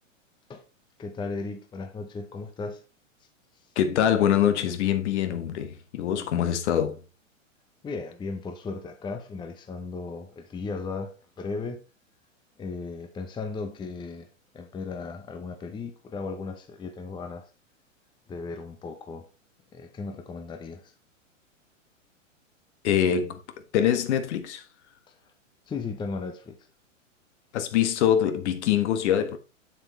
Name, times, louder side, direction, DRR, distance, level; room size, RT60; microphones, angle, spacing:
voice 1, 1.0-2.8 7.8-11.8 12.6-14.3 14.5-17.5 18.3-19.3 19.7-20.9 25.1-25.2 25.7-26.6, left 4 dB, 10° left, 0.8 m, -36 dB
voice 2, 3.7-7.0 22.8-23.4 23.7-24.6 27.5-29.4, left 9 dB, 55° left, 1.5 m, -24 dB
7.4 x 7.3 x 3.2 m
hypercardioid pair, 120°, 39 cm